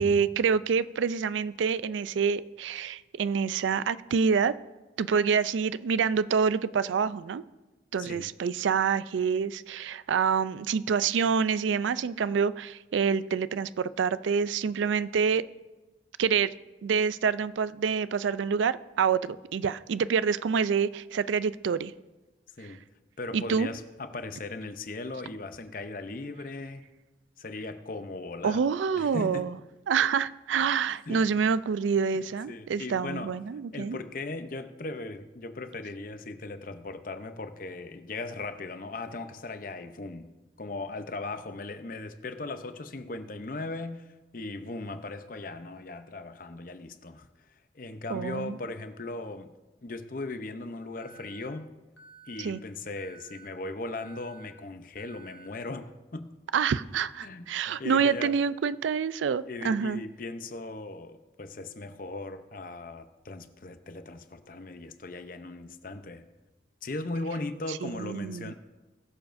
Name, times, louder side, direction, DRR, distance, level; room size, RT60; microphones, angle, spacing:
voice 1, 0.0-4.5 5.0-7.4 7.9-15.4 16.2-16.5 16.8-21.9 23.3-23.7 28.4-29.5 29.9-34.0 48.1-48.6 52.4-52.6 56.5-60.0 67.8-68.5, right 6 dB, 90° right, 16 dB, 0.4 m, -27 dB
voice 2, 23.2-26.9 27.4-28.6 28.9-29.5 31.1-31.2 32.1-33.4 33.7-40.3 40.6-44.1 44.3-47.3 47.7-49.5 49.8-51.7 52.3-56.3 57.2-57.5 57.8-58.4 59.5-66.2 66.8-68.5, left 2 dB, 50° left, 9 dB, 0.7 m, -38 dB
Alarm, 51.0-51.5 52.0-52.5 53.0-53.5 54.0-54.5 55.0-55.5, right 5 dB, 75° left, 1.3 m, -52 dB
20.5 x 7.1 x 2.6 m, 1.1 s
head